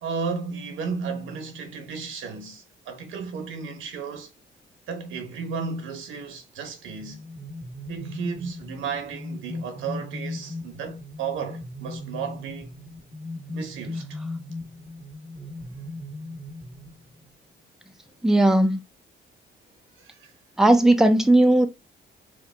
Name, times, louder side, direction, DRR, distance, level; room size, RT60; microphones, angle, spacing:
voice 1, 0.0-4.3 4.9-7.2 7.9-12.8 13.5-14.2 20.0-20.3 20.8-20.9, right 5 dB, 85° right, 1.1 m, -34 dB
sound 1, 6.9-17.4, left 2 dB, 30° left, 1.6 m, -38 dB
voice 2, 18.2-18.8 20.6-21.7, right 1 dB, ahead, 0.7 m, -17 dB
4.7 x 2.4 x 3.4 m
cardioid pair, 90°, 20 cm